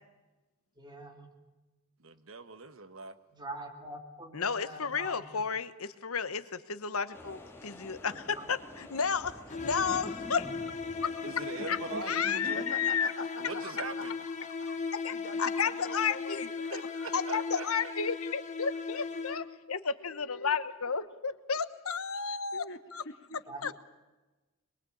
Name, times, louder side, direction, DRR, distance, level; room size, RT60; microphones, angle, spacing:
voice 1, 0.8-1.3 3.3-5.2 8.1-8.4 11.9-12.7 23.5-23.6, right 1 dB, 20° right, 2 dB, 3.4 m, -44 dB
voice 2, 2.0-3.1 11.2-12.7 13.4-14.1 16.7-17.9, right 3 dB, 65° right, 10 dB, 1.4 m, -42 dB
voice 3, 4.3-10.5 11.7-11.8 12.1-13.1 15.0-16.5 17.1-22.6 22.9-23.0 23.6-23.7, left 6 dB, 85° left, 13 dB, 1.1 m, -32 dB
sound 1, 7.1-12.2, left 1 dB, 10° left, 2.8 m, -48 dB
sound 2, 9.5-19.7, left 4 dB, 35° left, 1.2 m, -37 dB
voice 4, 12.5-14.8 15.1-17.4 17.8-17.9 19.1-19.5 20.0-20.9 22.5-23.7, left 3 dB, 60° left, 7 dB, 1.9 m, -46 dB
23.0 x 22.5 x 8.7 m, 1.1 s
head